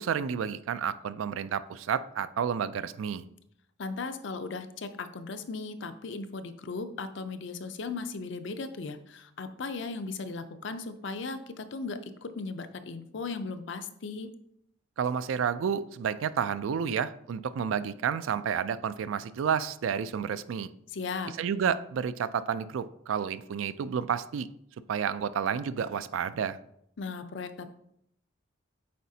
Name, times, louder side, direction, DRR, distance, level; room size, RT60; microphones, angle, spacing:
voice 1, 0.0-3.3 15.0-20.7 21.4-24.5 24.9-26.6, right 7 dB, 70° right, 14 dB, 0.3 m, -30 dB
voice 2, 3.8-14.3 20.9-21.3 27.0-27.7, left 4 dB, 60° left, 10 dB, 0.5 m, -37 dB
8.5 x 4.1 x 2.7 m, 0.74 s
head